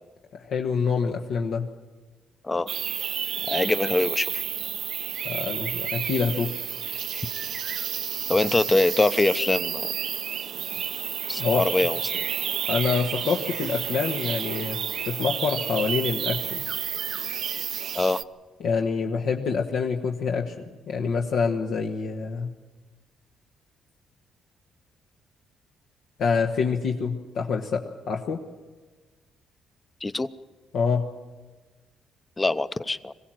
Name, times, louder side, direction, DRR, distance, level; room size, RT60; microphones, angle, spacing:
voice 1, 0.4-1.7 5.2-6.5 11.4-11.7 12.7-14.8 15.1-16.6 18.6-22.5 26.2-27.8 28.1-28.4 30.7-31.1, left 5 dB, 75° left, 1 dB, 1.3 m, -26 dB
sound 1, 2.7-18.2, right 9 dB, 65° right, 0.6 m, -31 dB
voice 2, 3.5-4.4 7.1-7.3 8.3-9.9 11.3-12.2 17.9-18.2 30.0-30.3 32.4-33.1, left 2 dB, 20° left, 14 dB, 0.7 m, -24 dB
21.5 x 16.0 x 7.7 m, 1.3 s
cardioid pair, 90°, 0 cm